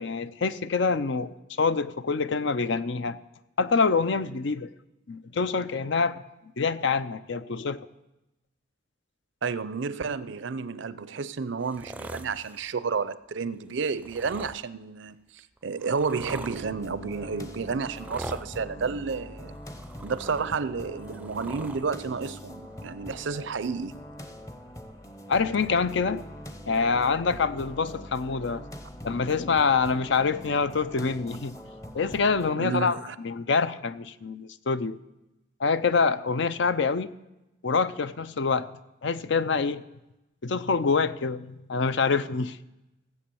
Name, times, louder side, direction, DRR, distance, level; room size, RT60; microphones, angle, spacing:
voice 1, 0.0-3.2 3.6-4.7 5.1-6.2 6.6-7.8 25.3-26.2 26.7-28.6 29.0-31.5 31.9-33.0 33.2-35.0 35.6-37.1 37.6-38.7 39.0-39.8 40.4-42.6, left 4 dB, 60° left, 13 dB, 0.6 m, -26 dB
voice 2, 9.4-19.6 20.0-24.0 32.6-33.2, right 5 dB, 65° right, 16 dB, 0.5 m, -31 dB
sound 1, 11.6-12.7 13.9-14.6 15.4-16.6 17.9-18.5 19.5-20.6 20.9-21.9 22.9-23.0, right 1 dB, 5° right, 0.5 m, -41 dB
sound 2, 16.5-32.5, equal, 15° left, 0.8 m, -43 dB
16.0 x 8.0 x 7.0 m, 0.96 s
head